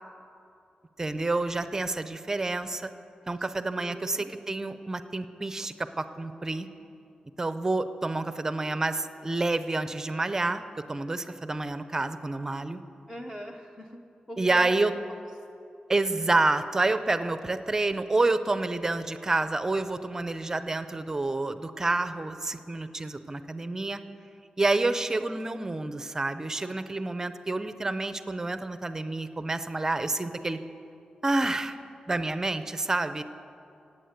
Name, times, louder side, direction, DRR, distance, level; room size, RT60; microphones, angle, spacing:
voice 1, 1.0-2.9 3.3-6.7 7.4-10.6 10.9-12.8 14.4-14.9 15.9-24.0 24.6-30.6 31.2-31.8 32.1-33.2, right 2 dB, 20° right, 11 dB, 0.6 m, -28 dB
voice 2, 3.8-4.3 13.1-14.0 14.3-14.8, right 1 dB, 10° left, 1 dB, 0.8 m, -39 dB
17.0 x 8.8 x 8.1 m, 2.7 s
wide cardioid pair, 140°, 3 cm